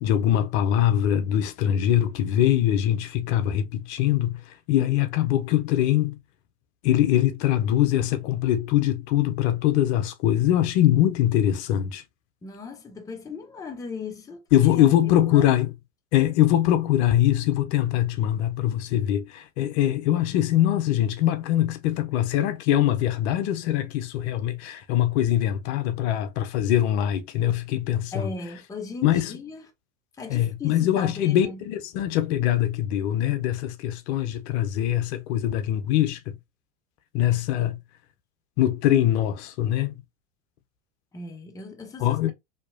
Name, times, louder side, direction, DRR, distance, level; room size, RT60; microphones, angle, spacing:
voice 1, 0.0-6.2 6.8-12.0 14.5-15.8 16.1-28.3 29.0-29.3 30.3-36.4 37.1-37.8 38.6-39.9 42.0-42.3, left 12 dB, 60° left, 0.6 m, -23 dB
voice 2, 12.4-14.4 14.7-15.4 28.1-29.6 30.2-31.6 41.1-42.3, left 3 dB, 10° left, 0.6 m, -38 dB
2.8 x 2.3 x 2.3 m
hypercardioid pair, 80°, 38 cm